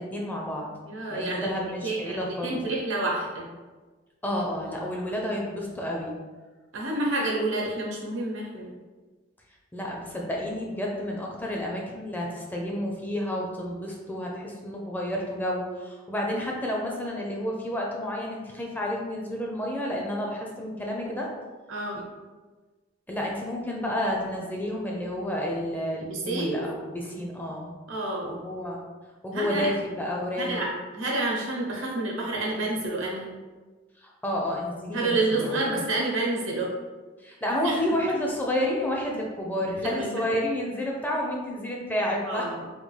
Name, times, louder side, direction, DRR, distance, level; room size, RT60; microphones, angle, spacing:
voice 1, 0.0-0.7 1.1-2.6 4.2-6.1 9.7-21.3 23.1-27.7 28.2-28.8 29.2-30.6 34.0-35.8 37.2-42.5, left 1 dB, 10° left, -2 dB, 0.4 m, -30 dB
voice 2, 0.8-3.5 6.7-8.7 21.7-22.0 26.0-26.7 27.9-28.4 29.3-29.7 30.4-33.3 34.9-36.7 37.6-37.8 38.1-38.2 39.8-40.2 42.2-42.7, right 2 dB, 80° right, -3 dB, 0.9 m, -29 dB
3.6 x 2.3 x 3.1 m, 1.3 s
head